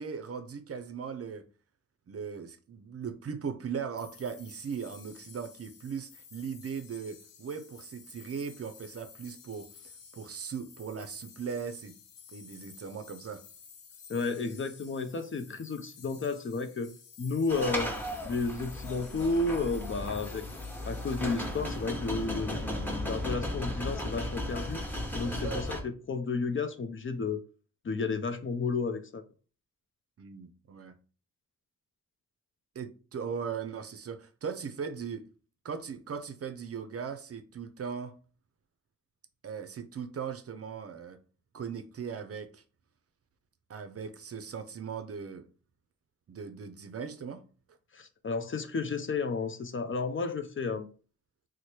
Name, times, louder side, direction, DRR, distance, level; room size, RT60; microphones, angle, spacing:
voice 1, 0.0-1.4 2.1-9.7 10.1-12.0 12.3-13.4 25.4-25.6 30.2-31.0 32.8-35.3 35.6-38.1 39.4-41.2 41.5-42.6 43.7-45.5 46.3-47.4, right 6 dB, 45° right, 0.5 m, -38 dB
sound 1, 4.0-22.7, left 6 dB, 85° left, 0.7 m, -54 dB
voice 2, 14.1-16.9 17.2-17.9 18.2-20.4 20.8-24.8 25.1-27.4 27.8-29.2 47.9-50.9, left 4 dB, 40° left, 0.5 m, -32 dB
sound 2, 17.5-25.8, left 1 dB, 5° left, 0.9 m, -35 dB
3.1 x 2.1 x 4.2 m
cardioid pair, 65°, 32 cm